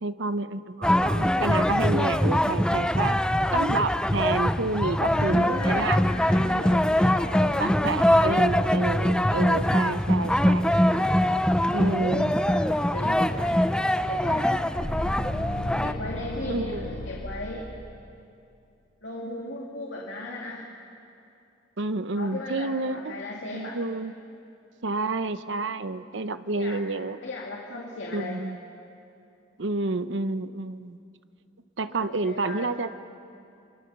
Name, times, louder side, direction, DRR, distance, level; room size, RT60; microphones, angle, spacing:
voice 1, 0.0-3.2 3.5-6.0 7.6-11.2 11.7-12.3 16.5-16.9 21.8-23.1 23.5-24.1 24.8-27.2 28.1-28.6 29.6-31.0 31.8-33.0, right 3 dB, 70° right, 12 dB, 0.8 m, -29 dB
sound 1, 0.8-15.9, left 1 dB, 5° left, 0.5 m, -23 dB
voice 2, 4.8-7.6 8.0-8.3 12.0-13.7 14.0-14.7 15.8-17.7 19.0-20.7 22.2-23.8 26.5-26.8 27.2-28.4 32.1-32.8, left 2 dB, 70° left, -2 dB, 2.5 m, -36 dB
sound 2, 14.8-17.6, left 1 dB, 90° left, 6.3 m, -34 dB
28.0 x 23.0 x 7.0 m, 2.6 s
head